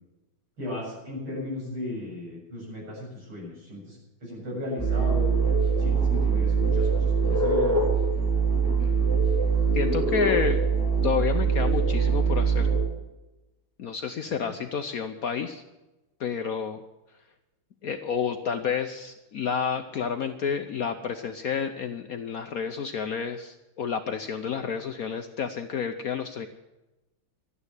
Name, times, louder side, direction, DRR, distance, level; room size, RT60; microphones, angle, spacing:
voice 1, 0.6-5.4 5.8-7.9 14.2-14.5, left 1 dB, 90° right, -4 dB, 8.5 m, -35 dB
sound 1, 4.8-12.8, right 5 dB, 5° right, 4.0 m, -23 dB
voice 2, 9.7-10.6 11.0-12.7 13.8-15.6 16.2-16.8 17.8-26.5, left 7 dB, 65° left, 7 dB, 0.9 m, -30 dB
12.5 x 9.4 x 9.6 m, 1.0 s
omnidirectional pair, 2.3 m